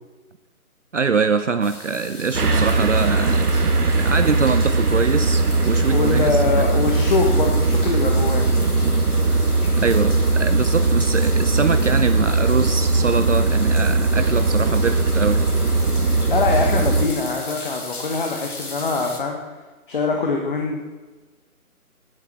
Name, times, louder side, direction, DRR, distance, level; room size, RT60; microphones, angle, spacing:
voice 1, 0.9-6.7 9.5-15.4, right 5 dB, 55° right, 10 dB, 0.8 m, -24 dB
sound 1, 1.6-19.2, left 3 dB, 75° left, 4.0 m, -37 dB
sound 2, 2.3-17.1, right 3 dB, 80° right, 1.9 m, -19 dB
voice 2, 5.9-8.5 16.3-19.4 19.9-20.8, left 4 dB, 35° left, 2 dB, 1.5 m, -23 dB
14.0 x 9.8 x 7.6 m, 1.3 s
hypercardioid pair, 170°, 45 cm